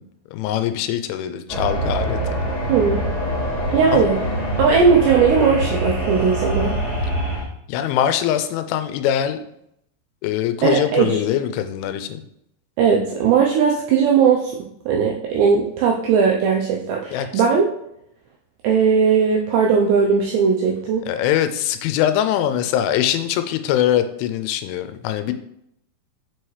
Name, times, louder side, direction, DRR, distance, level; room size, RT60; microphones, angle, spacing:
voice 1, 0.3-2.2 3.9-4.0 7.7-9.4 10.2-12.3 17.1-17.4 21.0-25.3, left 10 dB, 85° left, 9 dB, 2.9 m, -22 dB
sound 1, 1.5-7.4, equal, 35° left, 1.7 m, -24 dB
voice 2, 2.7-3.0 3.7-4.1 4.6-6.8 10.6-11.2 12.8-14.5 14.9-17.7 18.6-21.0, right 6 dB, 90° right, 0 dB, 2.4 m, -18 dB
6.9 x 4.7 x 3.1 m, 0.75 s
omnidirectional pair, 5.6 m